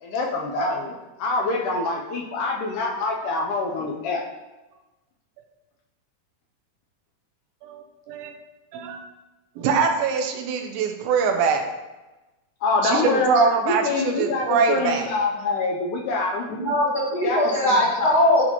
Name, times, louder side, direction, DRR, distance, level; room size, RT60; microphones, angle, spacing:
voice 1, 0.0-0.9 1.2-4.2 12.6-16.5 17.2-18.3, left 3 dB, 75° left, 0 dB, 2.0 m, -25 dB
voice 2, 7.6-8.3 8.7-9.0 9.6-11.6 12.8-15.1, right 5 dB, 90° right, 4 dB, 2.5 m, -23 dB
voice 3, 16.5-18.4, left 1 dB, 60° left, -9 dB, 1.0 m, -20 dB
9.7 x 4.1 x 3.0 m, 1.1 s
omnidirectional pair, 4.0 m